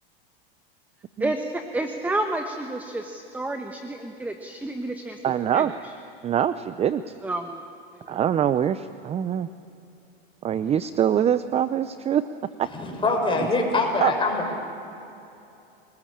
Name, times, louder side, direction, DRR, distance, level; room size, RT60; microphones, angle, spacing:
voice 1, 1.2-5.2 5.5-5.7 7.2-7.6 8.1-8.2, right 2 dB, 5° right, 6 dB, 1.2 m, -30 dB
voice 2, 5.2-5.7 6.2-7.0 8.1-9.5 10.4-12.3 12.6-12.7 14.0-14.1, right 9 dB, 20° right, 13 dB, 0.6 m, -23 dB
voice 3, 12.7-14.5, left 3 dB, 15° left, 1 dB, 6.2 m, -24 dB
29.0 x 19.5 x 8.8 m, 2.8 s
supercardioid pair, 115°, 30 cm